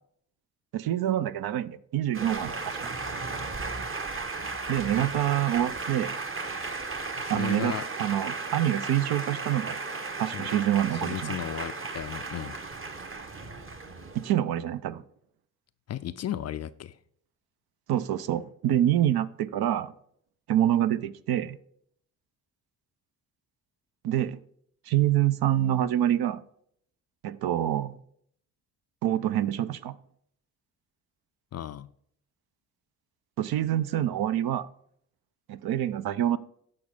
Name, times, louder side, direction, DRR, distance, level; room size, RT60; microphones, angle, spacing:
voice 1, 0.7-2.9 4.7-6.1 7.3-9.8 10.2-11.4 14.1-15.0 17.9-19.9 20.5-21.6 24.0-24.4 24.9-26.4 27.2-28.0 29.0-30.0 33.4-34.7 35.5-36.4, right 11 dB, 55° right, 0.6 m, -26 dB
Male speech man speaking, 2.1-14.3, right 3 dB, 30° right, 1.1 m, -35 dB
voice 2, 7.2-7.9 10.3-10.5 10.9-12.6 15.9-17.0 31.5-31.9, left 11 dB, 35° left, 0.4 m, -35 dB
14.5 x 5.3 x 3.5 m
hypercardioid pair, 40°, 45 cm